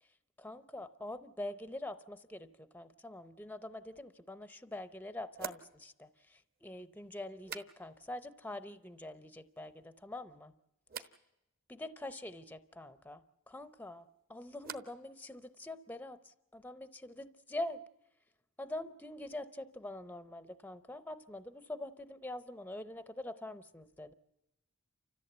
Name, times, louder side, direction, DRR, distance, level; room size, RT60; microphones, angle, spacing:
voice 1, 0.4-10.5 11.0-11.1 11.7-17.8 18.6-24.1, left 1 dB, 10° left, 12 dB, 0.7 m, -45 dB
sound 1, 4.1-4.2 5.3-8.2 8.5-9.1 9.4-10.0 10.9-11.2 13.6-15.1 15.4-16.0, right 6 dB, 40° right, 1.2 m, -50 dB
30.0 x 14.5 x 8.0 m, 0.92 s
head